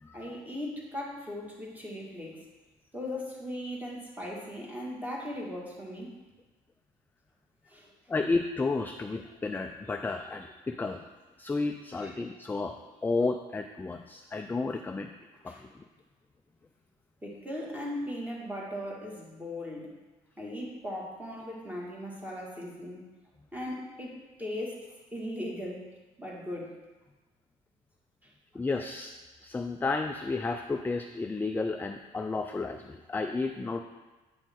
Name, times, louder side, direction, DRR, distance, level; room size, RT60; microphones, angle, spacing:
voice 1, 0.1-2.4 2.9-6.2 7.7-7.9 11.9-12.2 15.5-15.6 17.2-20.0 20.4-23.1 23.5-25.9 26.2-26.7 28.2-28.3, left 1 dB, 10° right, -3 dB, 1.8 m, -38 dB
voice 2, 8.1-11.0 11.4-12.8 13.0-15.1 15.4-15.7 28.5-29.1 29.4-33.8, left 3 dB, 10° left, 5 dB, 0.4 m, -32 dB
8.5 x 5.2 x 3.6 m, 1.2 s
cardioid pair, 100°, 15 cm